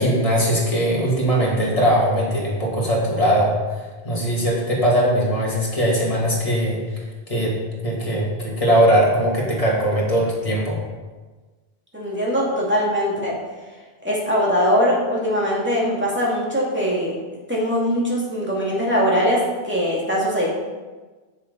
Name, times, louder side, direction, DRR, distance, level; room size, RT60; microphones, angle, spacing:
voice 1, 0.0-3.5 4.0-6.8 7.3-7.6 7.8-10.8, equal, 35° left, -4 dB, 2.4 m, -20 dB
voice 2, 11.9-13.4 14.0-17.2 17.5-20.5, equal, 10° right, -6 dB, 2.5 m, -21 dB
8.2 x 7.0 x 5.3 m, 1.3 s
omnidirectional pair, 1.0 m